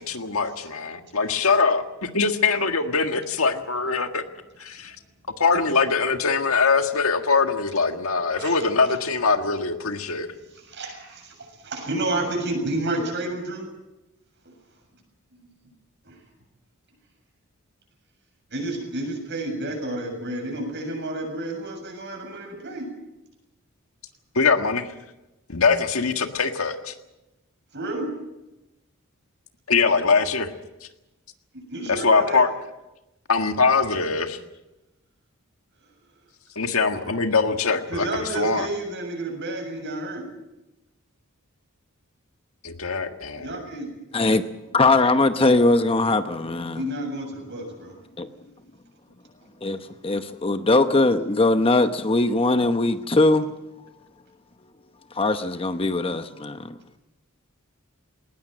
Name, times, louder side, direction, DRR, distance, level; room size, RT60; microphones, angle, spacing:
voice 1, 0.0-4.2 4.6-4.9 5.4-10.3 24.3-24.9 25.5-26.9 29.7-30.5 31.9-32.5 33.3-34.4 36.5-38.7 42.6-43.5, left 4 dB, 85° left, 1.7 m, -22 dB
voice 2, 10.5-11.3 11.6-13.7 14.5-14.6 16.0-16.2 18.5-22.9 27.7-28.1 31.5-32.4 37.9-40.2 43.3-44.2 46.7-47.9, right 2 dB, 55° right, 7.2 m, -30 dB
voice 3, 44.1-44.5 44.7-46.8 48.2-48.3 49.6-49.8 50.0-53.5 55.2-56.8, left 2 dB, 25° left, 0.9 m, -20 dB
19.5 x 19.5 x 7.7 m
head